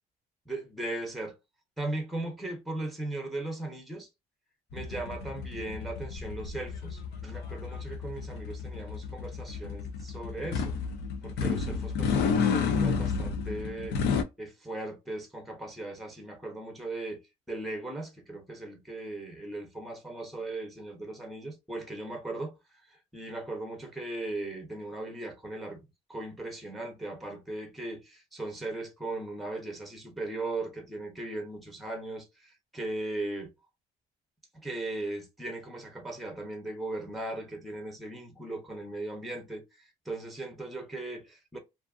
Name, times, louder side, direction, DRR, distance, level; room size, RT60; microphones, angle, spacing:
voice 1, 0.5-1.3 1.8-4.1 4.7-10.7 11.2-14.0 14.4-17.2 17.5-22.6 22.9-25.8 26.1-33.5 34.5-41.6, right 2 dB, ahead, 0.7 m, -38 dB
sound 1, 4.7-14.2, left 5 dB, 75° left, 0.5 m, -31 dB
2.5 x 2.5 x 2.4 m
cardioid pair, 110°, 17 cm